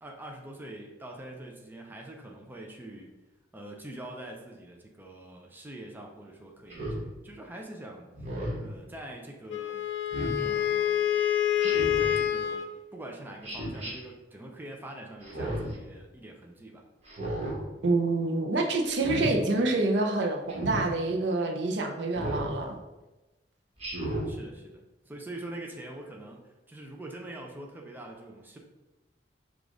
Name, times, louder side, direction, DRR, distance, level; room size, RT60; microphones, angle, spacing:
voice 1, 0.0-3.1 3.5-7.0 7.2-8.1 8.6-9.8 10.4-11.1 11.6-16.8 24.3-24.8 25.0-28.6, right 1 dB, 10° right, 0 dB, 0.5 m, -44 dB
Speech synthesizer, 6.7-7.0 8.1-8.7 10.1-10.4 11.6-12.1 13.4-13.9 15.2-15.8 17.1-17.6 18.9-19.3 20.5-20.8 22.1-22.5 23.8-24.3, right 1 dB, 35° right, 1.3 m, -33 dB
Wind instrument woodwind instrument, 9.5-12.7, left 10 dB, 85° left, 0.4 m, -27 dB
voice 2, 17.8-22.8, right 2 dB, 70° right, 3 dB, 0.6 m, -27 dB
5.0 x 2.4 x 3.7 m, 1.1 s
head